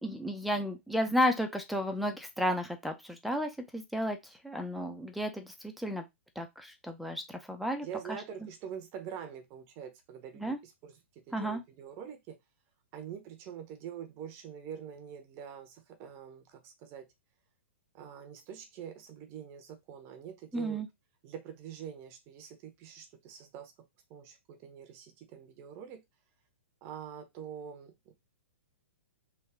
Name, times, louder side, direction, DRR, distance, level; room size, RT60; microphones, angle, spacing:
voice 1, 0.0-4.2 4.4-6.0 6.4-7.9 10.4-10.6 11.3-11.6 20.5-20.9, equal, ahead, 0.5 m, -32 dB
voice 2, 7.8-12.4 12.9-17.1 17.9-20.8 21.2-23.7 24.1-26.0 26.8-28.1, right 8 dB, 35° right, 0.7 m, -45 dB
3.5 x 2.3 x 3.4 m
figure-of-eight pair, 115°, 7 cm